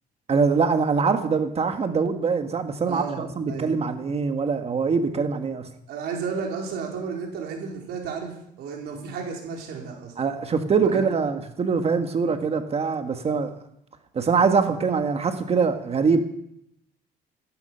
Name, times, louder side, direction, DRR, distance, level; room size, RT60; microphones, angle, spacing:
voice 1, 0.3-5.7 10.2-13.5 14.1-16.2, right 5 dB, 35° right, 7 dB, 1.6 m, -23 dB
voice 2, 2.9-3.7 5.9-10.1 10.9-11.1, right 5 dB, 75° right, 0 dB, 4.5 m, -33 dB
15.5 x 13.0 x 5.8 m, 0.76 s
cardioid pair, 110°, 17 cm